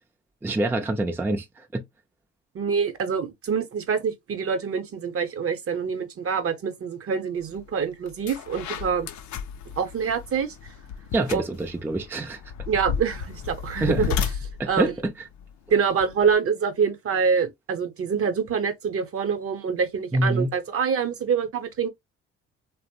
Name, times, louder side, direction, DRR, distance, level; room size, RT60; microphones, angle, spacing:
voice 1, 0.4-1.8 11.1-12.4 13.8-14.1 14.6-15.1 20.1-20.5, right 2 dB, 10° right, 0.4 m, -26 dB
voice 2, 2.5-9.1 9.8-10.7 11.3-11.4 12.7-14.1 14.7-14.9 15.7-21.9, right 6 dB, 50° right, 0.7 m, -26 dB
sound 1, 7.5-7.7 8.1-16.3, left 7 dB, 70° left, 0.5 m, -33 dB
2.9 x 2.0 x 2.7 m
cardioid pair, 90°, 30 cm